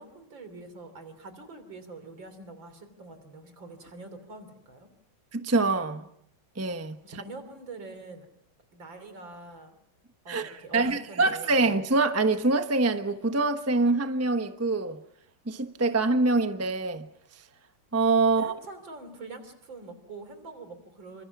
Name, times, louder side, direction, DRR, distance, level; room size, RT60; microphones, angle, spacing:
voice 1, 0.0-4.9 7.0-8.3 8.7-9.8 10.2-11.6 18.4-21.2, right 3 dB, 65° right, 4.0 m, -44 dB
voice 2, 5.3-6.0 6.6-7.0 10.3-15.0 15.5-17.1 17.9-18.5, right 3 dB, 15° right, 0.6 m, -25 dB
28.5 x 25.5 x 6.0 m
omnidirectional pair, 2.3 m